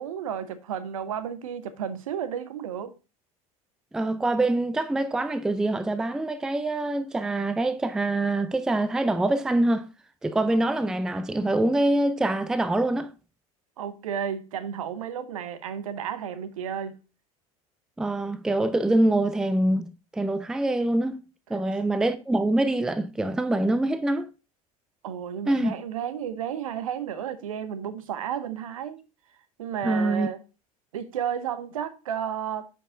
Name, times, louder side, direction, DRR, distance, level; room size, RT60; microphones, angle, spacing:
voice 1, 0.0-2.9 13.8-16.9 21.5-21.6 25.0-29.1 29.6-30.4 30.9-32.7, right 8 dB, 65° right, 0.8 m, -32 dB
voice 2, 3.9-9.9 10.2-13.1 18.0-21.2 21.5-24.3 25.5-25.7 29.8-30.3, right 2 dB, 5° right, 0.4 m, -25 dB
9.6 x 5.4 x 2.5 m
figure-of-eight pair, 75°, 19 cm